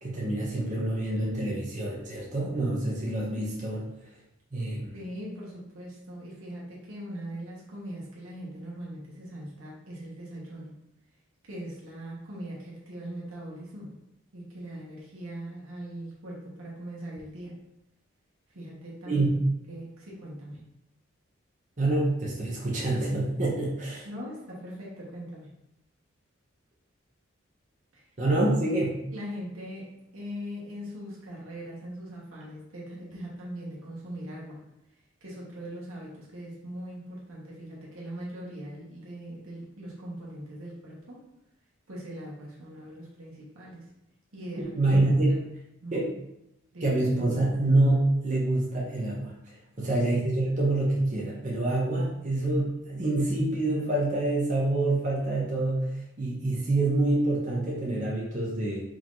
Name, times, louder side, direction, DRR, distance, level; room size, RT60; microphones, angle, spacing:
voice 1, 0.0-3.9 4.5-4.9 19.1-19.3 21.8-24.1 28.2-28.9 44.8-45.4 45.9-46.1 46.8-49.3 49.8-58.8, right 2 dB, 35° right, -4 dB, 0.7 m, -26 dB
voice 2, 4.9-10.7 11.5-14.0 14.3-17.6 18.5-19.3 19.7-20.6 24.0-25.5 27.9-28.1 29.1-34.6 35.2-41.2 41.9-43.9 44.3-44.8 45.3-45.4 45.8-45.9 46.7-47.0 49.8-50.0, equal, 85° right, -5 dB, 1.3 m, -40 dB
4.6 x 2.6 x 3.7 m, 0.86 s
head